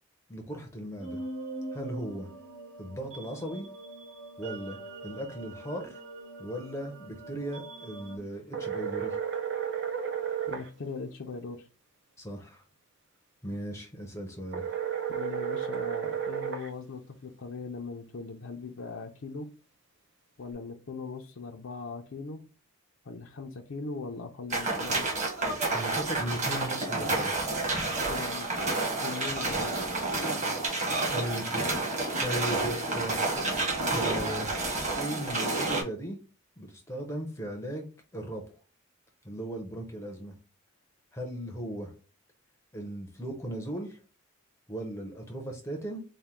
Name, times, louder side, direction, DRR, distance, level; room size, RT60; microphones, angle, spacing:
voice 1, 0.3-1.2 1.7-2.3 2.8-3.7 4.4-6.0 6.4-9.2 12.2-12.6 13.4-14.6 25.7-27.4 31.1-33.2 33.9-34.6 35.0-36.2 36.6-38.4 39.2-40.4 41.1-41.9 42.7-44.0 44.7-46.0, right 1 dB, 15° left, 2 dB, 0.6 m, -37 dB
sound 1, 1.0-8.2, right 2 dB, 80° right, 1.9 m, -43 dB
sound 2, 8.5-10.7 14.5-16.7, right 8 dB, 55° right, 0.5 m, -32 dB
voice 2, 10.5-11.7 15.1-19.5 20.4-22.4 23.0-25.1 28.0-28.5 29.0-29.9, left 4 dB, 60° left, 1 dB, 0.5 m, -40 dB
sound 3, 24.5-35.8, right 2 dB, 35° right, 1.3 m, -30 dB
4.2 x 2.2 x 3.5 m, 0.34 s
head